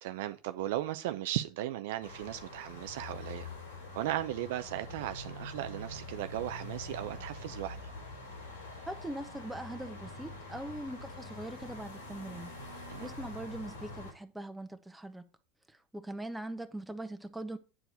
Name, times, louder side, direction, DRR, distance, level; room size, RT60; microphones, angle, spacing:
voice 1, 0.0-3.5 3.9-7.8 12.9-13.1, right 13 dB, 75° right, 0.6 m, -36 dB
sound 1, 2.0-14.1, left 2 dB, 90° left, 3.6 m, -45 dB
voice 2, 8.8-12.5 13.0-15.3 15.7-17.6, right 1 dB, 5° right, 1.2 m, -41 dB
8.9 x 4.7 x 5.7 m
hypercardioid pair, 85°, 0 cm